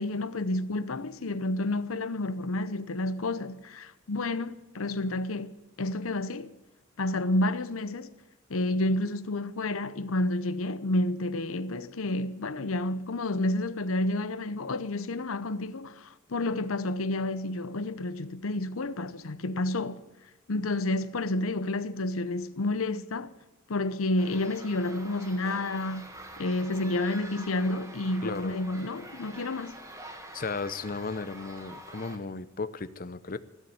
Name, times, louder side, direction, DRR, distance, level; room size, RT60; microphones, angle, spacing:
voice 1, 0.0-6.5 7.0-8.1 8.5-20.0 20.5-23.3 23.7-26.1 26.4-29.8, left 2 dB, 80° left, 0.8 m, -30 dB
sound 1, 24.2-32.2, right 1 dB, 15° right, 1.8 m, -46 dB
voice 2, 28.2-28.6 30.3-33.4, left 4 dB, 40° left, 0.7 m, -35 dB
15.5 x 7.1 x 9.2 m
head